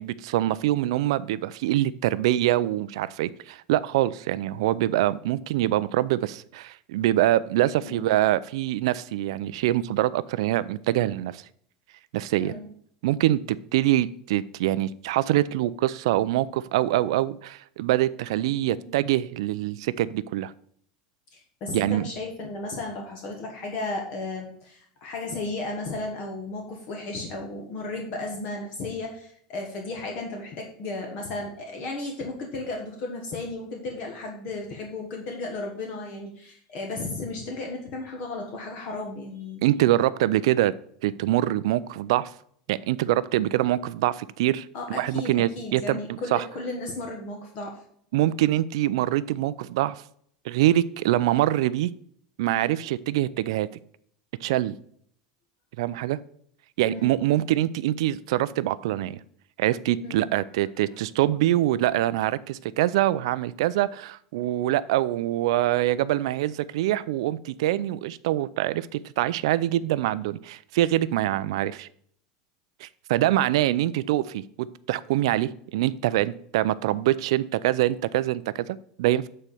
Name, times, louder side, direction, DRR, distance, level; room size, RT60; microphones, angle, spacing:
voice 1, 0.0-11.4 12.1-12.5 13.0-20.5 21.7-22.1 39.6-40.7 41.0-42.3 42.7-46.4 48.1-50.0 50.4-51.9 52.4-53.7 54.4-54.7 55.8-56.2 56.8-59.2 59.6-71.9 72.8-79.3, right 14 dB, 75° right, 17 dB, 0.4 m, -24 dB
voice 2, 21.3-39.6 44.7-47.8 52.6-52.7 56.9-57.1 60.0-60.2 60.7-60.8, left 2 dB, 45° left, 1 dB, 1.4 m, -34 dB
8.2 x 4.3 x 6.7 m, 0.63 s
supercardioid pair, 165°, 3 cm